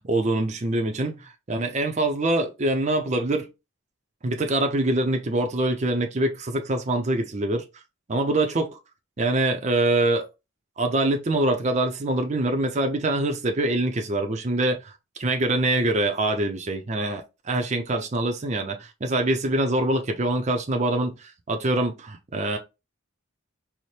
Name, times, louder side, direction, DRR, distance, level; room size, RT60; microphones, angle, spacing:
voice 1, 0.1-3.5 4.2-7.6 8.1-8.8 9.2-10.3 10.8-14.9 15.2-22.6, right 2 dB, 35° right, 0.5 m, -24 dB
4.2 x 2.1 x 3.1 m
head